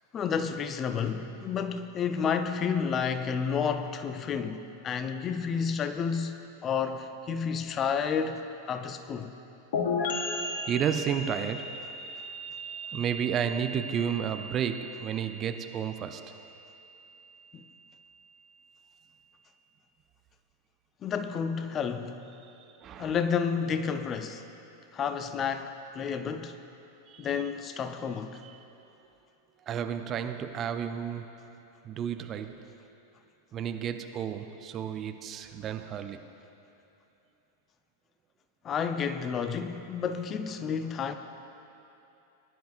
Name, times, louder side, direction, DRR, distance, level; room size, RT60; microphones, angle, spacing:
voice 1, 0.1-9.3 17.5-17.6 21.0-22.2 23.0-24.5 24.9-26.6 27.2-28.4 38.6-41.1, left 6 dB, 25° left, 9 dB, 0.5 m, -31 dB
sound 1, 9.7-17.3, left 2 dB, 55° left, 1.2 m, -36 dB
voice 2, 10.7-16.2 22.6-23.2 27.1-27.3 28.4-28.5 29.7-31.6 31.8-32.7 33.5-36.2, right 8 dB, 30° right, 8 dB, 0.5 m, -32 dB
19.5 x 10.0 x 2.5 m, 2.9 s
figure-of-eight pair, 90°, 0 cm